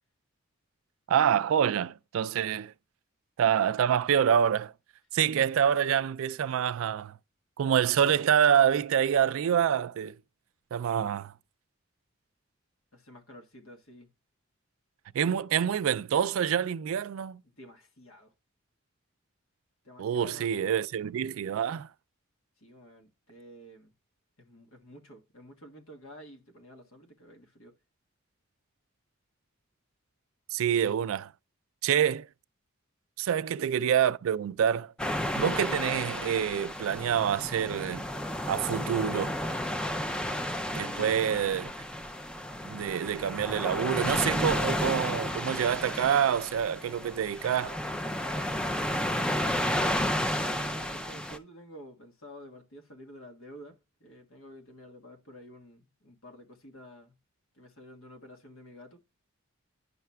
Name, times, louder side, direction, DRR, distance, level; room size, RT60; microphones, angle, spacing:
voice 1, 1.1-2.7 3.4-4.7 5.1-7.2 7.6-10.2 10.7-11.3 15.1-17.4 20.0-21.9 30.5-31.3 31.8-32.3 33.2-34.9 35.4-38.0 38.5-39.4 40.7-41.7 42.6-47.8, right 8 dB, 75° right, 0.3 m, -26 dB
voice 2, 12.9-14.1 17.4-18.3 19.8-20.8 22.6-23.9 24.4-27.7 33.3-33.7 40.7-41.2 48.9-49.4 49.7-57.2 57.5-59.0, equal, 80° left, 1.4 m, -50 dB
sound 1, 35.0-51.4, left 1 dB, 5° left, 0.3 m, -32 dB
10.0 x 5.7 x 2.2 m
head